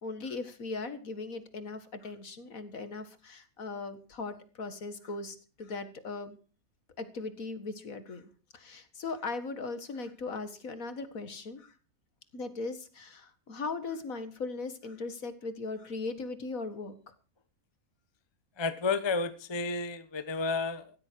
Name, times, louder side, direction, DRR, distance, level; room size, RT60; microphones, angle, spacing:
voice 1, 0.0-6.4 7.0-11.7 12.3-16.9, left 3 dB, 65° left, 11 dB, 2.1 m, -39 dB
voice 2, 18.6-20.9, left 4 dB, 20° left, 12 dB, 0.9 m, -31 dB
15.5 x 13.5 x 4.6 m, 0.37 s
omnidirectional pair, 1.6 m